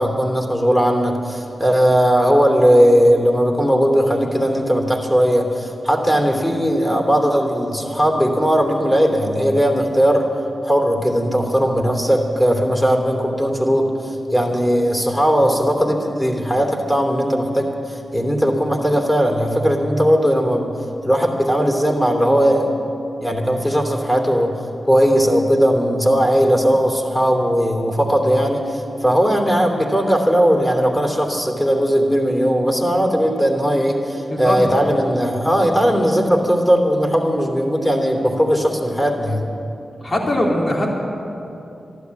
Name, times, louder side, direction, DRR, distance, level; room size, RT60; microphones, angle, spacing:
voice 1, 0.0-10.3 10.6-20.7 21.0-22.8 23.2-24.6 24.8-39.4, equal, 10° left, 2 dB, 3.0 m, -18 dB
voice 2, 34.3-34.7 40.0-40.9, left 1 dB, 50° left, -2 dB, 3.4 m, -20 dB
13.0 x 12.0 x 8.3 m, 2.8 s
cardioid pair, 45°, 0 cm